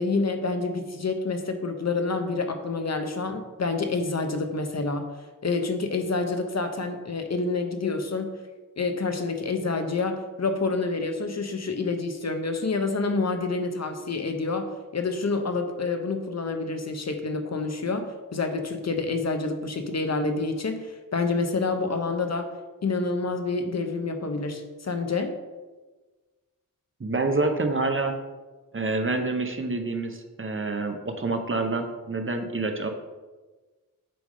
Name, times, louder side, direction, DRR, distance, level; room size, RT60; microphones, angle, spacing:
voice 1, 0.0-5.0 5.4-8.4 8.8-22.5 22.8-25.4, left 3 dB, 50° left, 6 dB, 0.8 m, -28 dB
voice 2, 27.0-28.1 28.7-32.9, right 3 dB, 35° right, 5 dB, 0.8 m, -27 dB
7.8 x 3.5 x 5.0 m, 1.3 s
wide cardioid pair, 75°, 34 cm